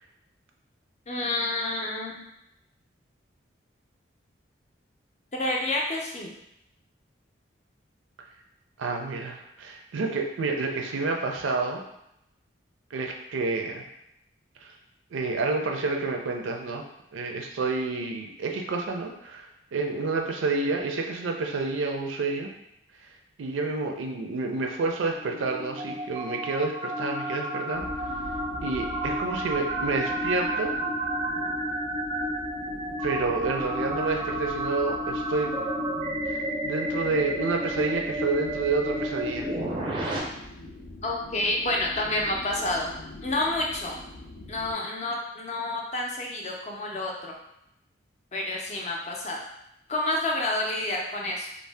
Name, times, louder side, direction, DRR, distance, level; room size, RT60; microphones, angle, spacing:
voice 1, 1.1-2.2 5.3-6.3 41.0-42.9 43.2-43.9 44.5-47.4 48.3-49.4 49.9-51.5, left 2 dB, 35° left, -1 dB, 0.4 m, -29 dB
voice 2, 8.8-11.8 12.9-13.8 14.6-14.7 15.1-16.8 17.1-19.5 19.7-22.5 23.4-27.9 28.6-30.7 33.0-35.6 36.3-39.5, right 3 dB, 85° right, 2 dB, 0.4 m, -29 dB
sound 1, 25.1-40.2, right 1 dB, 25° right, 0.4 m, -31 dB
sound 2, 27.7-44.7, left 2 dB, 90° left, 0.5 m, -43 dB
2.6 x 2.0 x 3.3 m, 0.82 s
head